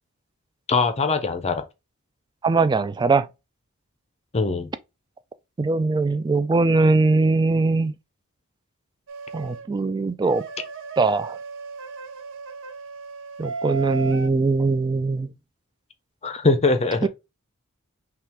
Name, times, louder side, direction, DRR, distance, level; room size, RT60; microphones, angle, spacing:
voice 1, 0.7-1.6 4.3-4.7 16.2-17.1, left 3 dB, 30° left, 0.6 m, -22 dB
voice 2, 2.4-3.3 5.6-7.9 9.3-10.4 11.0-11.4 13.4-15.3 17.0-17.1, right 3 dB, 20° right, 0.3 m, -21 dB
sound 1, 9.1-9.7 10.2-14.3, right 4 dB, 60° right, 0.6 m, -35 dB
5.5 x 2.4 x 3.6 m
head